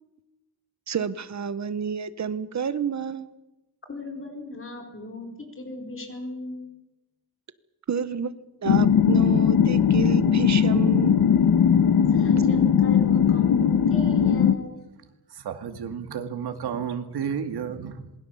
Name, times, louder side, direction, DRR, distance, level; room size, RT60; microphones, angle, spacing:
voice 1, 0.9-3.3 7.9-8.3 8.6-11.2, right 7 dB, 45° right, 14 dB, 1.2 m, -29 dB
voice 2, 3.9-6.7 12.1-14.8, left 2 dB, 35° left, 4 dB, 4.6 m, -37 dB
sound 1, 8.7-14.5, left 7 dB, 65° left, 1.3 m, -19 dB
voice 3, 15.3-18.1, right 7 dB, 85° right, 7 dB, 2.2 m, -32 dB
27.0 x 21.0 x 7.3 m, 1.0 s
wide cardioid pair, 140°, 38 cm